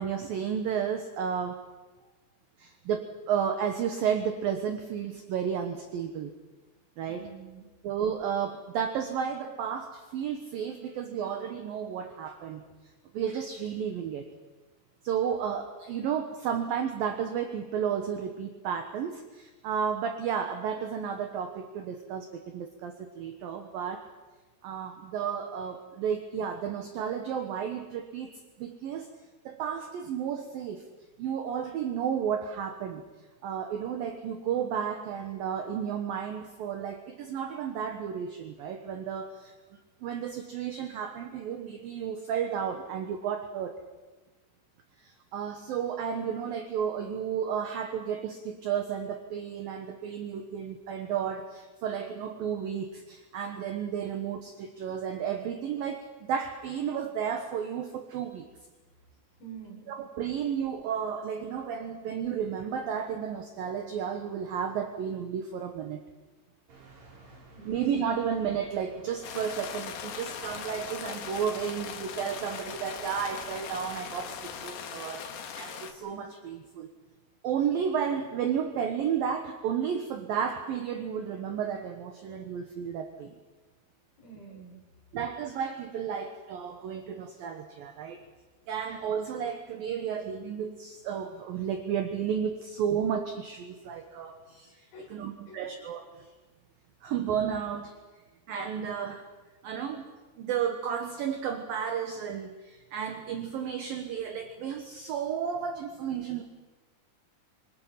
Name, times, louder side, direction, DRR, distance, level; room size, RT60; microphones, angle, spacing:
voice 1, 0.0-1.6 2.6-6.4 7.0-7.2 7.8-12.6 13.1-14.3 15.0-24.1 24.6-28.3 28.6-29.1 29.5-30.9 31.2-33.0 33.4-39.5 40.0-43.8 45.0-58.5 59.9-66.0 67.7-76.9 77.4-83.3 85.1-88.2 88.7-96.3 97.0-97.9 98.5-99.3 99.6-100.1 100.4-106.4, right 8 dB, 70° right, 6 dB, 2.2 m, -32 dB
voice 2, 7.1-7.7 10.8-10.9 11.2-11.3 59.4-59.9 67.1-67.2 67.5-67.8 84.2-84.8 94.5-94.6 94.9-95.8, right 5 dB, 45° left, -1 dB, 7.2 m, -48 dB
sound 1, 66.7-74.7, right 2 dB, 40° right, 4.4 m, -54 dB
sound 2, 69.2-75.9, left 7 dB, 65° left, 2.8 m, -40 dB
25.5 x 25.5 x 5.8 m, 1.2 s
omnidirectional pair, 5.8 m